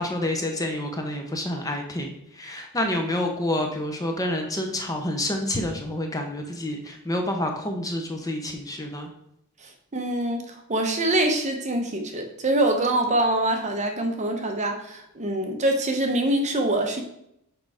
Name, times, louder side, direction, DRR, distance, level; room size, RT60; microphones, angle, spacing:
voice 1, 0.0-2.1 2.3-9.1, left 1 dB, 15° left, 3 dB, 0.8 m, -28 dB
voice 2, 9.6-17.0, right 1 dB, 30° right, 4 dB, 0.9 m, -25 dB
6.4 x 4.7 x 4.9 m, 0.76 s
head